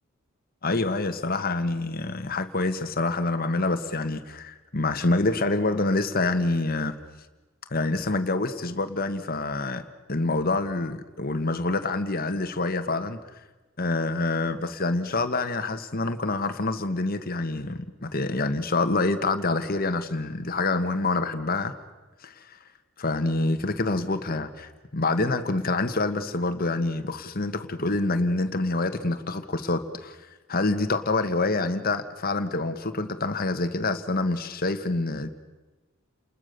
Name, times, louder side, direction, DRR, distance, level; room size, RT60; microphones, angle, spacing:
voice 1, 0.6-6.9 7.7-9.8 10.1-13.2 13.8-21.7 22.2-22.4 23.0-30.2 30.5-35.3, left 2 dB, 45° left, 9 dB, 1.5 m, -26 dB
30.0 x 20.5 x 6.8 m, 1.2 s
head